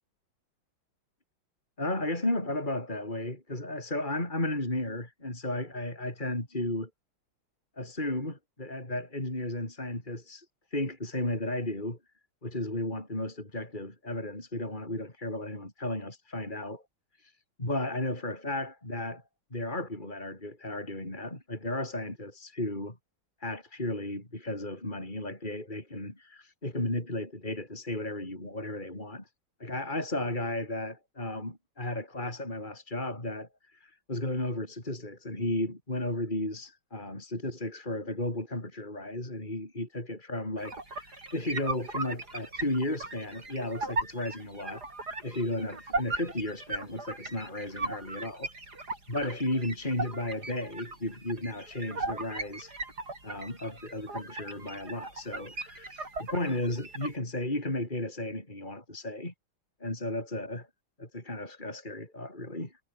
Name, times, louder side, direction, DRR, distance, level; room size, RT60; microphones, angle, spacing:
voice 1, 1.8-6.9 7.8-10.5 10.7-12.0 12.4-16.8 17.2-17.3 17.6-19.2 19.5-23.0 23.4-29.3 29.6-44.9 45.2-48.5 49.1-52.7 53.2-59.3 59.8-60.7 61.0-62.8, left 1 dB, 20° left, 6.0 m, -34 dB
sound 1, 40.6-57.2, right 2 dB, 50° right, 6.0 m, -38 dB
omnidirectional pair, 2.2 m